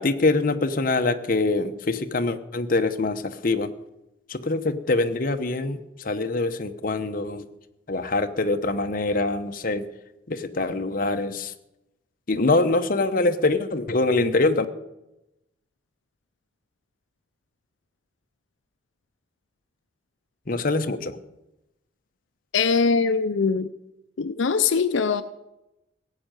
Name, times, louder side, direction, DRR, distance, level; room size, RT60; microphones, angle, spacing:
voice 1, 0.0-3.7 4.3-7.5 7.9-9.9 10.3-11.5 12.3-14.7 20.5-21.2, left 2 dB, 45° left, 8 dB, 0.9 m, -24 dB
voice 2, 22.5-23.7 24.2-25.2, left 5 dB, 80° left, 11 dB, 0.5 m, -22 dB
16.5 x 6.5 x 9.0 m, 0.91 s
head